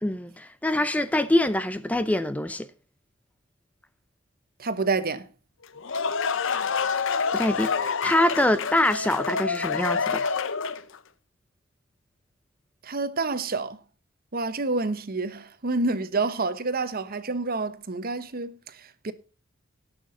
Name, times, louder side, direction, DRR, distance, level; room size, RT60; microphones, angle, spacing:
voice 1, 0.0-2.7 7.0-10.2, left 1 dB, 5° left, 0.4 m, -25 dB
voice 2, 4.6-5.3 12.8-13.8 14.3-19.1, right 3 dB, 45° right, 1.0 m, -28 dB
sound 1, 5.6-11.0, left 5 dB, 65° left, 0.8 m, -27 dB
18.0 x 6.2 x 3.7 m
head